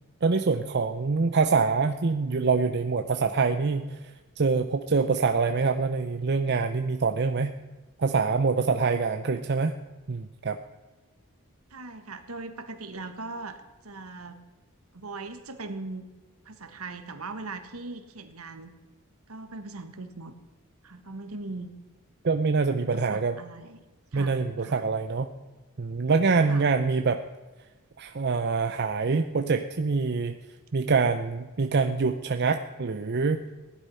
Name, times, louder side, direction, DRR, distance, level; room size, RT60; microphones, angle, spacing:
voice 1, 0.2-4.0 4.4-7.5 8.0-9.8 10.1-10.6 22.2-23.4 24.1-25.3 25.8-27.2 28.0-30.4 30.7-33.4, right 4 dB, 50° right, 7 dB, 0.6 m, -25 dB
voice 2, 11.7-14.4 14.9-16.0 16.4-18.7 19.3-20.3 20.8-21.7 22.9-23.8 24.1-24.8 26.5-26.7, right 3 dB, 80° right, 8 dB, 1.5 m, -40 dB
16.5 x 11.5 x 5.6 m, 1.2 s
head